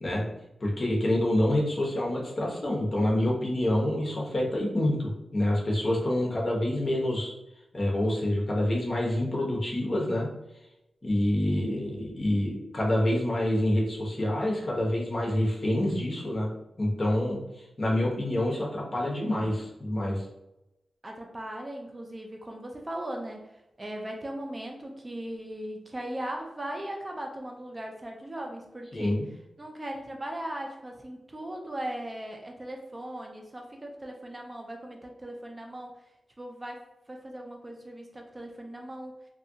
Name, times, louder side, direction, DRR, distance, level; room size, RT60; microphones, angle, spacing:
voice 1, 0.6-7.3 7.7-10.3 11.0-16.5 16.8-17.4 17.8-20.3 28.9-29.3, left 1 dB, 45° left, -3 dB, 0.9 m, -27 dB
voice 2, 21.0-29.2 29.6-36.0 36.4-39.2, right 1 dB, 25° right, 2 dB, 0.4 m, -38 dB
2.6 x 2.4 x 2.6 m, 0.90 s
cardioid pair, 65°, 0 cm